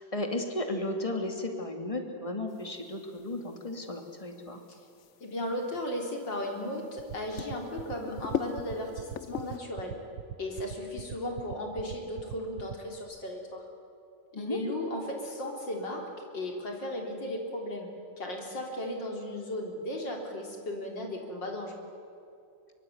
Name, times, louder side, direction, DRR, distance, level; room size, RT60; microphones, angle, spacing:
voice 1, 0.0-4.6 14.3-14.6, left 1 dB, 15° left, 4 dB, 2.5 m, -34 dB
sound 1, 2.5-9.6, left 8 dB, 55° left, 0.9 m, -41 dB
voice 2, 5.2-10.0 10.4-13.6 14.3-17.9 18.2-21.8, left 1 dB, 70° left, 2 dB, 4.3 m, -36 dB
sound 2, 7.0-13.0, right 11 dB, 85° right, 1.7 m, -39 dB
23.5 x 23.5 x 9.5 m, 2.6 s
omnidirectional pair, 2.0 m